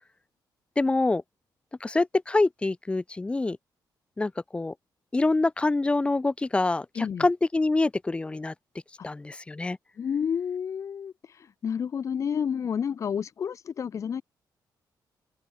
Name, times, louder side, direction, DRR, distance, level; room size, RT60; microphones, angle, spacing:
voice 1, 0.8-1.2 1.8-3.6 4.2-4.7 5.1-8.5 9.0-9.8, left 2 dB, 15° left, 4.7 m, -25 dB
voice 2, 6.9-7.3 9.0-9.1 10.0-14.2, left 7 dB, 40° left, 2.5 m, -30 dB
open air
cardioid pair, 160°, 8 cm